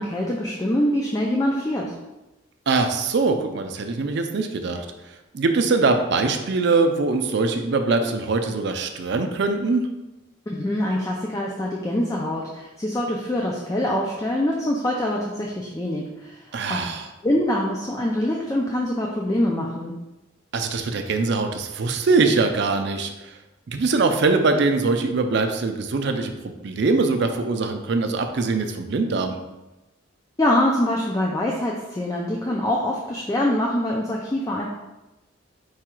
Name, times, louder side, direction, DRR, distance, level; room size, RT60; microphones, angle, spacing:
voice 1, 0.0-1.9 10.5-16.4 16.7-16.8 17.2-20.0 30.4-34.7, left 1 dB, 15° left, -1 dB, 0.4 m, -24 dB
voice 2, 2.7-4.9 5.3-9.8 16.5-17.1 20.5-23.3 23.7-29.4, right 3 dB, 60° right, 6 dB, 0.4 m, -22 dB
4.8 x 2.3 x 4.3 m, 1.0 s
head